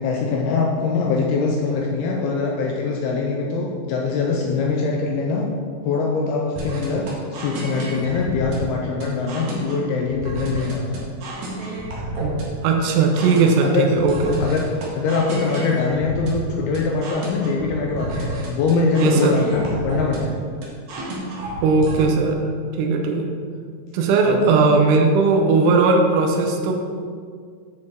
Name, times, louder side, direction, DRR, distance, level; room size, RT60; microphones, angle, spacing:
voice 1, 0.0-5.5 5.8-11.0 13.6-13.9 14.2-14.6 14.9-20.4 24.3-24.4, left 4 dB, 85° left, -1 dB, 2.3 m, -23 dB
sound 1, 6.6-22.0, right 1 dB, 60° right, 2.1 m, -31 dB
voice 2, 12.2-14.4 19.0-19.4 21.6-22.5 22.8-23.3 23.9-26.8, right 4 dB, 85° right, 2 dB, 3.2 m, -18 dB
9.9 x 6.4 x 3.7 m, 2.1 s
omnidirectional pair, 5.3 m